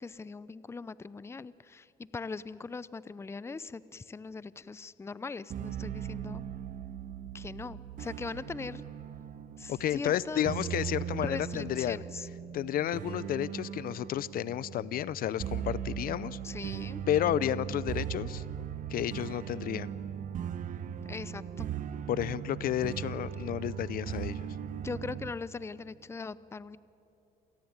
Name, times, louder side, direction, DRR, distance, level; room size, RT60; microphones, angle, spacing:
voice 1, 0.0-6.4 7.3-8.8 9.6-10.5 11.2-12.3 16.4-17.0 21.1-21.7 24.8-26.8, left 4 dB, 15° left, 18 dB, 0.6 m, -40 dB
sound 1, 5.5-25.3, right 9 dB, 50° right, 1.1 m, -39 dB
voice 2, 9.7-12.0 12.5-16.4 17.1-18.4 18.9-19.9 22.1-24.5, left 11 dB, 60° left, 19 dB, 0.6 m, -31 dB
27.5 x 18.0 x 9.6 m, 2.8 s
cardioid pair, 110°, 17 cm